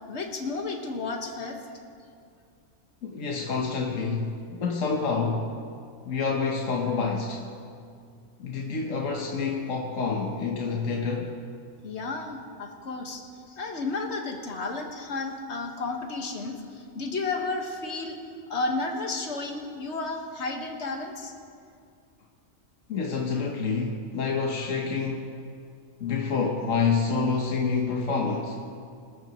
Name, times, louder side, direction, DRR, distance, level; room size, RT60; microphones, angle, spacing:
voice 1, 0.1-1.6 11.8-13.2 13.6-18.2 18.5-21.3, left 3 dB, 55° left, 2 dB, 1.7 m, -32 dB
voice 2, 3.0-5.6 6.1-7.4 8.4-11.4 22.9-25.4 26.0-28.6, left 4 dB, 70° left, 0 dB, 1.5 m, -28 dB
25.5 x 14.0 x 3.0 m, 2.3 s
omnidirectional pair, 1.4 m